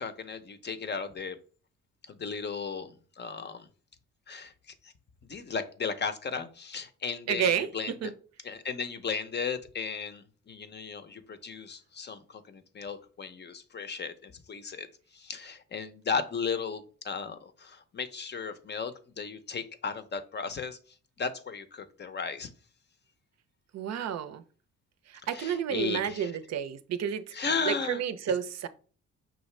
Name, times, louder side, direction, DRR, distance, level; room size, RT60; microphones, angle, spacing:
voice 1, 0.0-1.4 2.1-3.7 4.3-4.5 4.8-4.9 5.2-8.1 8.4-14.9 15.1-20.8 21.2-22.5 25.3-26.3 27.3-28.0, left 5 dB, 35° left, 0.6 m, -35 dB
voice 2, 7.3-8.1 23.7-24.4 25.1-27.2 27.6-28.7, right 8 dB, 60° right, 0.5 m, -30 dB
5.7 x 2.5 x 3.2 m
cardioid pair, 90°, 30 cm